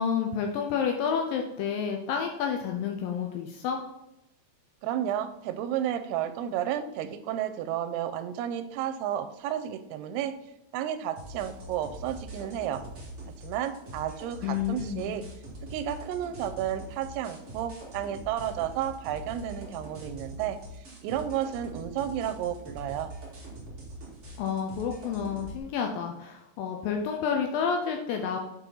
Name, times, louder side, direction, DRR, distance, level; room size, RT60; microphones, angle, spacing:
voice 1, 0.0-3.8 14.4-15.1 24.4-28.4, left 7 dB, 85° left, 3 dB, 2.1 m, -30 dB
voice 2, 4.8-10.3 10.7-12.8 13.4-15.2 15.7-20.6 21.0-23.1, right 10 dB, 90° right, 10 dB, 2.7 m, -32 dB
sound 1, 11.1-25.6, right 1 dB, 35° right, 1.0 m, -43 dB
8.8 x 4.6 x 3.8 m, 0.89 s
omnidirectional pair, 4.6 m